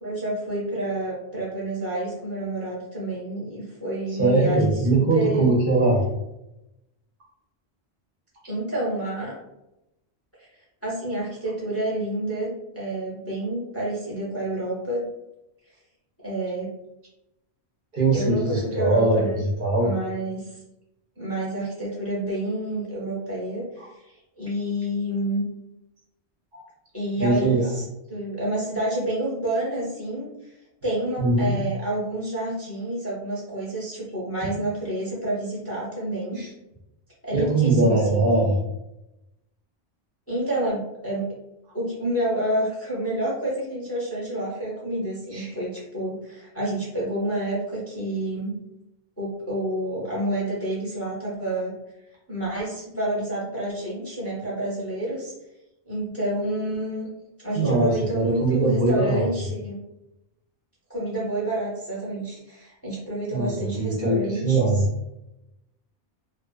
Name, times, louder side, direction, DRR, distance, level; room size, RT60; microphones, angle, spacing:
voice 1, 0.0-5.5 8.5-9.4 10.8-15.1 16.2-16.7 18.1-19.4 19.8-20.5 21.2-23.6 24.4-25.4 26.9-30.3 30.8-36.4 37.2-38.3 40.3-41.3 41.7-48.6 49.2-51.7 52.3-55.3 55.9-57.1 57.4-59.8 60.9-64.7, right 1 dB, 15° left, -6 dB, 0.6 m, -29 dB
voice 2, 4.1-6.0 17.9-19.9 23.8-23.9 26.5-26.6 27.2-27.7 31.2-31.6 34.4-34.5 36.3-36.5 37.3-38.6 45.3-45.5 57.5-59.3 63.3-64.9, right 2 dB, 60° right, -2 dB, 0.7 m, -21 dB
2.4 x 2.3 x 2.2 m, 0.90 s
omnidirectional pair, 1.1 m